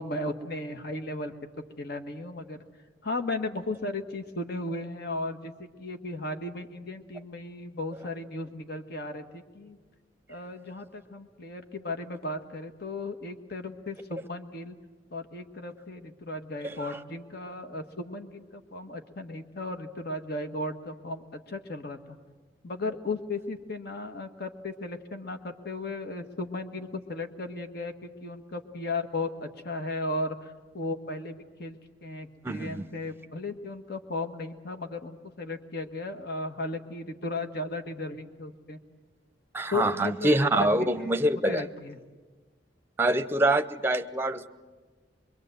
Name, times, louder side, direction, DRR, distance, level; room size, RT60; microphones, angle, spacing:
voice 1, 0.0-1.3 1.8-2.6 3.0-9.8 10.3-14.7 15.1-22.2 22.6-38.8 39.7-41.2 41.5-42.0, left 2 dB, 60° left, 6 dB, 1.5 m, -35 dB
voice 2, 32.4-32.8 39.5-41.6 43.0-44.5, right 1 dB, 10° right, 10 dB, 0.8 m, -25 dB
24.5 x 23.5 x 8.0 m, 1.4 s
head